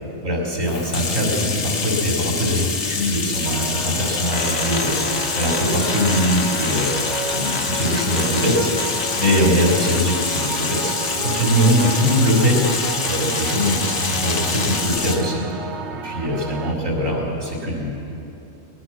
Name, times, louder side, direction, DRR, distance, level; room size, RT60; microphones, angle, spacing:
voice 1, 0.2-5.0 5.4-6.9 7.3-8.7 9.2-10.9 11.2-12.6 13.1-15.4 16.0-17.9, equal, 90° right, -3 dB, 4.7 m, -21 dB
Bathtub (filling or washing), 0.6-15.3, left 4 dB, 60° left, 1.5 m, -26 dB
sound 1, 3.5-16.8, right 4 dB, 60° right, 1.3 m, -32 dB
sound 2, 4.3-14.9, left 3 dB, 35° left, 0.8 m, -32 dB
21.0 x 21.0 x 6.2 m, 3.0 s
omnidirectional pair, 1.3 m